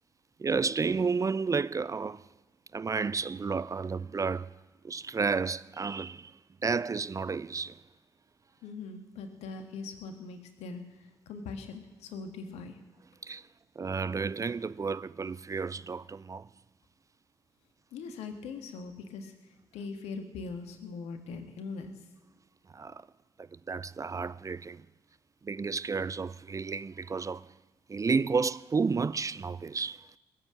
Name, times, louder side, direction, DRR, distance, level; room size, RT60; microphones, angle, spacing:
voice 1, 0.4-2.3 2.7-4.5 4.8-6.3 6.6-7.8 13.2-13.4 13.8-16.5 22.7-23.0 23.4-24.8 25.4-27.5 27.9-30.1, right 5 dB, 30° right, 0.4 m, -31 dB
voice 2, 8.6-12.8 17.9-22.0, left 4 dB, 70° left, 1.6 m, -41 dB
18.5 x 7.9 x 8.6 m
hypercardioid pair, 45°, 11 cm